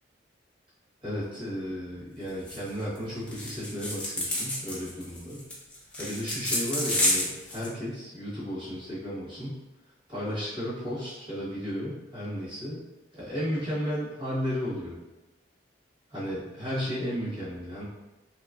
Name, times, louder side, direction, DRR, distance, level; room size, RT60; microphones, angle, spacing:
voice 1, 1.0-5.4 6.0-9.6 10.1-12.8 13.1-15.0 16.1-17.8, equal, 25° right, -10 dB, 1.1 m, -34 dB
sound 1, 2.5-2.7 2.9-3.0 3.3-7.7, left 1 dB, 5° left, 0.4 m, -29 dB
2.9 x 2.3 x 2.3 m, 1.0 s
head